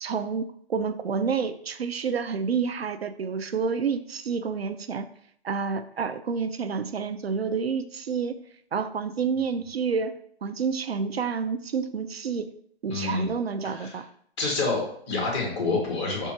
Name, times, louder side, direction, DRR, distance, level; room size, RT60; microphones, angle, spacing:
voice 1, 0.0-5.1 5.4-8.4 8.7-12.5 12.8-14.1, right 5 dB, 65° right, 11 dB, 0.6 m, -29 dB
voice 2, 12.9-13.3 13.6-14.0 14.4-16.3, left 3 dB, 25° left, -2 dB, 2.0 m, -28 dB
5.4 x 4.5 x 4.6 m, 0.64 s
figure-of-eight pair, 155°, 32 cm